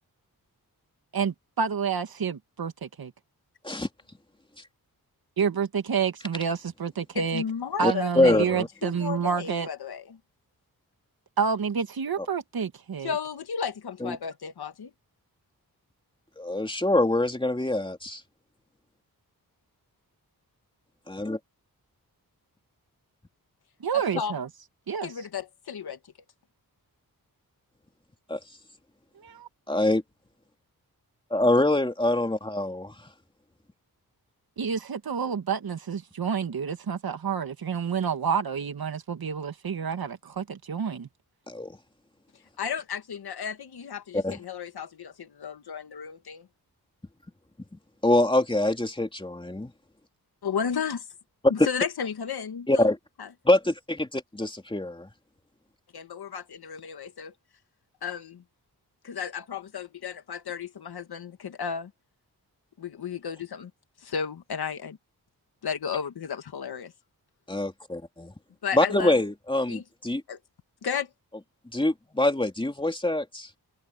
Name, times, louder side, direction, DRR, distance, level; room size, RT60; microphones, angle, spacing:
voice 1, 1.1-3.1 5.4-7.4 7.8-9.7 11.4-13.2 23.8-24.5 24.9-25.1 29.2-29.5 34.6-41.1, right 6 dB, 70° right, 2.1 m, -29 dB
voice 2, 7.2-10.2 13.0-14.9 23.9-24.4 25.0-26.0 42.6-46.5 50.4-51.1 51.5-52.9 53.2-53.3 55.9-57.3 58.0-58.4 59.0-61.9 62.8-63.7 64.0-65.0 65.6-66.9 68.6-69.2 69.7-69.8 70.3-70.4 70.8-71.1, left 7 dB, 85° left, 1.9 m, -33 dB
voice 3, 7.8-8.7 14.0-14.2 16.4-18.2 21.1-21.4 28.3-28.4 29.7-30.0 31.3-32.9 41.5-41.8 44.1-44.4 48.0-49.7 51.6-51.7 52.7-53.0 53.4-55.1 67.5-68.3 68.7-70.2 71.7-73.5, left 1 dB, 15° left, 3.0 m, -24 dB
wide cardioid pair, 120°, 37 cm